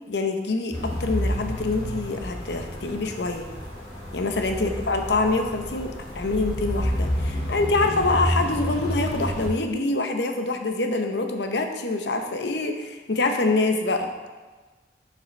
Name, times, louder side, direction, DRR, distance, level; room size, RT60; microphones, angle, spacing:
voice 1, 0.1-3.5 4.1-14.1, left 3 dB, 75° left, 5 dB, 0.7 m, -25 dB
sound 1, 0.7-9.5, equal, 30° left, 2.1 m, -30 dB
9.2 x 5.4 x 3.3 m, 1.3 s
head